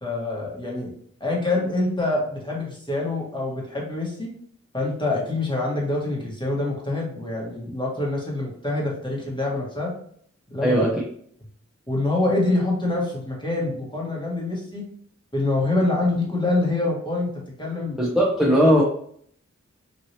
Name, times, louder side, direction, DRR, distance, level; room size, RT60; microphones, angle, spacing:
voice 1, 0.0-0.9 1.2-4.3 4.7-9.9 10.5-10.8 11.9-14.8 15.3-17.3 17.6-18.0, left 2 dB, 15° left, -3 dB, 1.4 m, -25 dB
voice 2, 10.6-11.0 18.0-18.8, equal, ahead, -5 dB, 0.8 m, -18 dB
3.2 x 2.7 x 2.8 m, 0.62 s
cardioid pair, 50°, 29 cm